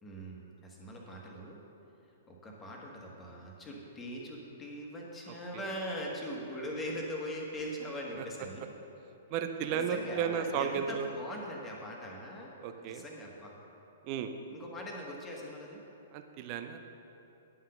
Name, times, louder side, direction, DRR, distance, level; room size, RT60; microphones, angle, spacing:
voice 1, 0.0-1.6 2.3-8.7 9.7-12.5 12.8-13.5 14.5-15.8, equal, 15° left, -2 dB, 1.6 m, -41 dB
voice 2, 9.3-11.1 12.6-13.0 14.0-14.3 16.1-16.9, right 7 dB, 35° right, 7 dB, 0.7 m, -34 dB
10.5 x 5.8 x 6.6 m, 2.9 s
figure-of-eight pair, 110°, 0 cm